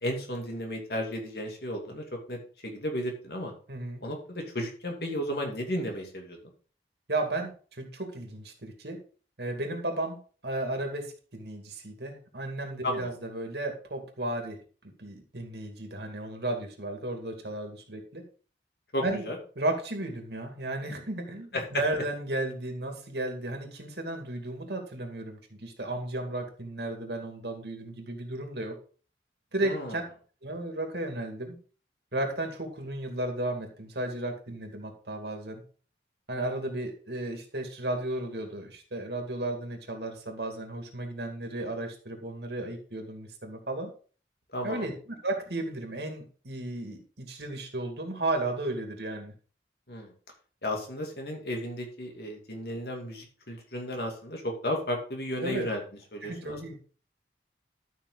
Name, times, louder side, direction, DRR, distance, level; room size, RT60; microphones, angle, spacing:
voice 1, 0.0-3.5 4.0-6.4 12.8-13.1 18.9-19.4 21.5-21.8 29.6-30.0 44.5-44.9 49.9-50.1 50.6-55.8 56.1-56.7, left 1 dB, 60° left, 1 dB, 2.7 m, -34 dB
voice 2, 3.7-4.0 7.1-9.0 9.4-10.2 10.4-14.6 14.8-18.2 19.0-19.2 19.6-28.8 29.5-30.0 30.4-31.6 32.1-35.6 36.3-43.9 44.6-44.9 45.2-49.3 55.4-55.7 56.2-56.7, right 2 dB, 70° right, 4 dB, 2.4 m, -34 dB
12.5 x 6.2 x 4.0 m, 0.40 s
head